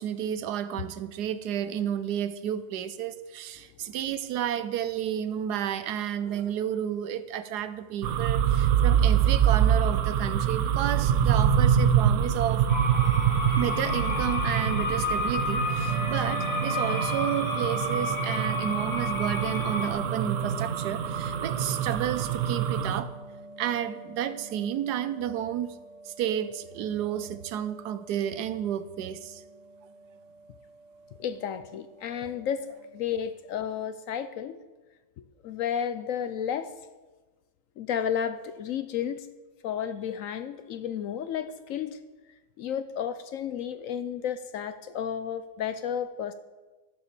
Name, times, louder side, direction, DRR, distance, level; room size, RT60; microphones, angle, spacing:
voice 1, 0.0-12.7 13.6-23.1 23.6-25.7 26.1-29.4, right 10 dB, 85° right, 13 dB, 1.3 m, -31 dB
sound 1, 8.0-23.0, right 9 dB, 60° right, 0.9 m, -25 dB
sound 2, 12.7-19.9, left 3 dB, 85° left, 2.2 m, -32 dB
sound 3, 15.9-33.1, right 1 dB, 20° right, 1.4 m, -44 dB
voice 2, 31.2-34.6 35.4-36.7 37.8-39.3 39.6-42.0 42.6-46.3, left 8 dB, 70° left, 11 dB, 0.8 m, -32 dB
12.0 x 7.0 x 6.9 m, 1.2 s
omnidirectional pair, 1.7 m